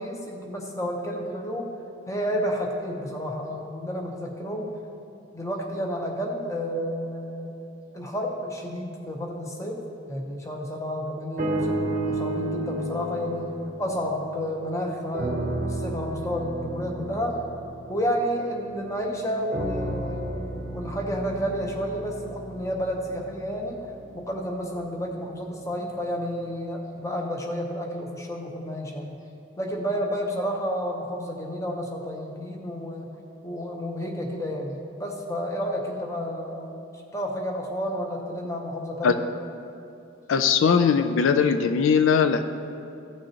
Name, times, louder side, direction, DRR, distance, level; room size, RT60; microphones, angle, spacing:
voice 1, 0.0-1.7 2.1-4.7 5.3-7.6 7.9-9.8 10.1-17.4 17.9-29.2 29.6-33.1 33.4-36.8 37.1-39.3, equal, 15° left, 1 dB, 0.8 m, -31 dB
sound 1, 11.4-14.7 15.1-18.9 19.5-23.7 24.4-24.5, right 1 dB, 40° right, 0.7 m, -32 dB
voice 2, 40.3-42.4, left 6 dB, 80° left, 8 dB, 0.4 m, -20 dB
15.0 x 6.2 x 2.9 m, 2.8 s
head